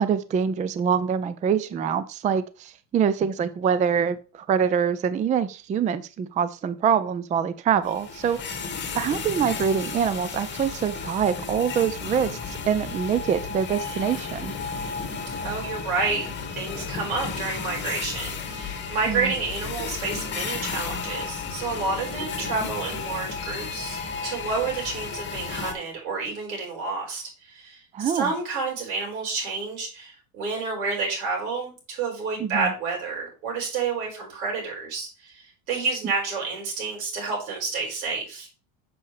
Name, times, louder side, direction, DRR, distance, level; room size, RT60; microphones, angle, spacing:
voice 1, 0.0-8.7 8.9-14.5 19.1-19.3 27.9-28.3 32.4-32.7, right 7 dB, 20° right, 0.4 m, -25 dB
sound 1, 7.8-25.7, left 5 dB, 25° left, 2.0 m, -33 dB
voice 2, 15.4-16.3 16.5-38.5, right 4 dB, 85° right, 5.4 m, -29 dB
8.3 x 7.0 x 3.3 m
supercardioid pair, 120°, 42 cm